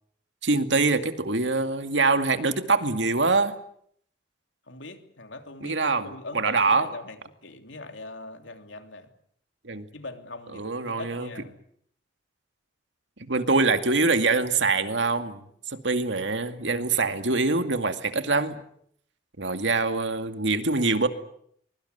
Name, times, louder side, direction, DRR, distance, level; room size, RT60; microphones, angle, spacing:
voice 1, 0.4-3.6 5.6-6.9 9.6-9.9 10.5-11.3 13.2-15.4 15.7-18.6 19.4-21.1, right 3 dB, 75° right, 8 dB, 2.3 m, -24 dB
voice 2, 4.7-9.1 9.9-11.6, left 2 dB, 85° left, 7 dB, 3.0 m, -41 dB
24.0 x 23.0 x 8.1 m, 0.68 s
head